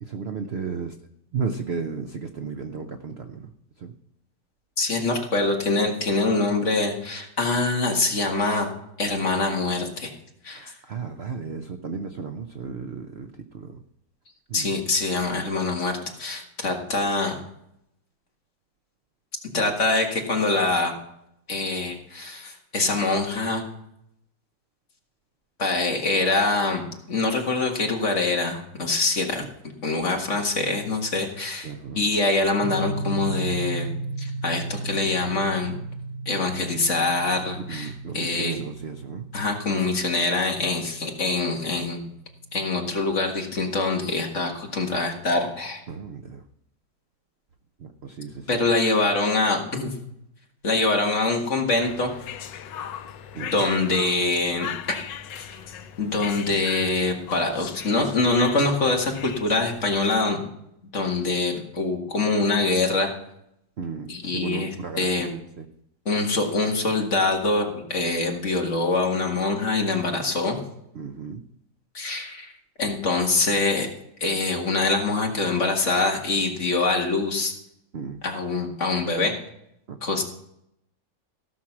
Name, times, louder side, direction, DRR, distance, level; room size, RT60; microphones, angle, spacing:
voice 1, 0.0-1.0 1.3-3.9 10.5-13.8 14.5-14.7 19.5-19.7 31.6-32.0 37.7-39.3 45.9-46.4 47.8-48.6 53.3-53.7 63.8-65.7 70.9-71.4 77.9-78.2 79.9-80.0, right 5 dB, 60° right, 7 dB, 0.7 m, -34 dB
voice 2, 4.8-8.7 9.0-10.1 10.4-10.7 14.5-17.4 19.5-20.9 21.5-23.6 25.6-29.4 29.8-33.9 34.2-35.8 36.3-37.9 38.1-38.5 39.3-42.0 42.5-45.8 48.5-49.9 50.6-52.1 53.5-55.0 55.3-55.6 56.0-60.4 60.9-63.1 64.1-64.7 65.0-65.3 66.1-70.6 71.9-72.5 72.8-73.9 74.2-77.5 78.2-79.3 80.0-80.2, left 3 dB, 40° left, 1 dB, 2.0 m, -24 dB
sound 1, 32.6-42.7, right 3 dB, 40° right, 4.8 m, -35 dB
sound 2, 51.8-60.2, left 9 dB, 85° left, 1.5 m, -39 dB
16.0 x 6.3 x 5.9 m, 0.77 s
omnidirectional pair, 1.9 m